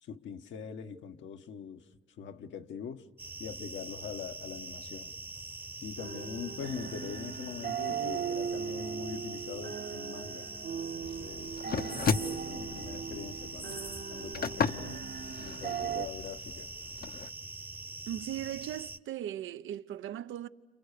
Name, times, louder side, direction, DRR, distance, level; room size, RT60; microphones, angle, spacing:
voice 1, 0.0-1.9 2.2-3.1 3.4-5.1 5.8-10.5 10.9-13.8 14.1-15.1 15.4-16.7, left 7 dB, 70° left, 1.3 m, -43 dB
sound 1, 3.2-19.0, right 2 dB, 10° right, 0.9 m, -44 dB
sound 2, 6.0-16.1, right 7 dB, 55° right, 1.2 m, -39 dB
sound 3, 11.0-17.3, left 6 dB, 45° left, 0.9 m, -36 dB
voice 2, 18.1-20.5, right 11 dB, 80° right, 0.8 m, -38 dB
29.5 x 28.0 x 6.7 m
cardioid pair, 90°, 20 cm